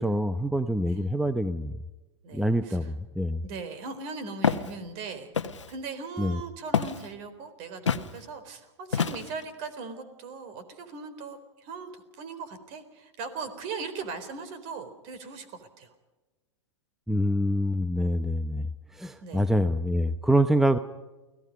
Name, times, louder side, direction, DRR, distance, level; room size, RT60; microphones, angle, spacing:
voice 1, 0.0-1.7 2.3-3.4 6.2-6.4 17.1-18.7 19.0-20.8, equal, ahead, 12 dB, 0.8 m, -25 dB
voice 2, 2.2-2.9 3.4-15.9 19.2-19.5, right 4 dB, 45° right, 11 dB, 4.0 m, -39 dB
Walk footsteps, 4.4-4.7 5.3-5.7 6.7-7.1 7.9-8.1 8.9-9.4, left 6 dB, 90° left, 1.3 m, -27 dB
29.5 x 18.0 x 5.4 m, 1.2 s
hypercardioid pair, 110°, 15 cm